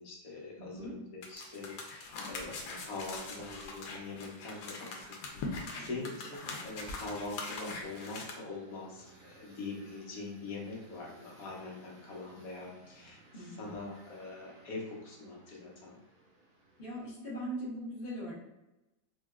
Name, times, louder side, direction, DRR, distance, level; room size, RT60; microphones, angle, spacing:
voice 1, 0.0-16.0, left 3 dB, 60° left, -2 dB, 1.2 m, -43 dB
voice 2, 0.6-0.9 5.8-6.1 13.3-13.7 16.8-18.3, equal, 30° left, -9 dB, 1.1 m, -41 dB
sound 1, 1.2-8.3, left 3 dB, 85° left, 1.3 m, -42 dB
sound 2, 2.7-2.9 3.4-3.5 3.9-4.2 4.5-4.7 5.0-5.9 6.3-6.5 6.9-8.3, right 4 dB, 70° right, 1.0 m, -57 dB
sound 3, 6.4-17.1, right 2 dB, 40° right, 0.6 m, -59 dB
3.9 x 2.9 x 2.3 m, 0.99 s
omnidirectional pair, 1.8 m